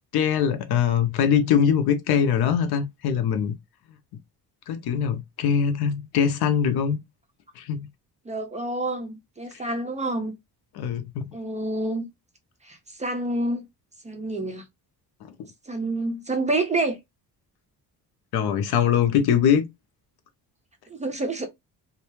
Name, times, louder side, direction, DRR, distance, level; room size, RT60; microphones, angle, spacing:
voice 1, 0.1-3.5 4.7-7.0 7.6-7.9 9.5-9.6 10.7-11.3 15.2-15.3 18.3-19.7, left 8 dB, 80° left, 0.7 m, -22 dB
voice 2, 8.3-10.3 11.3-12.1 12.6-13.6 14.0-14.6 15.7-17.0 20.9-21.5, right 2 dB, 20° right, 0.4 m, -28 dB
2.5 x 2.2 x 3.0 m
cardioid pair, 175°, 38 cm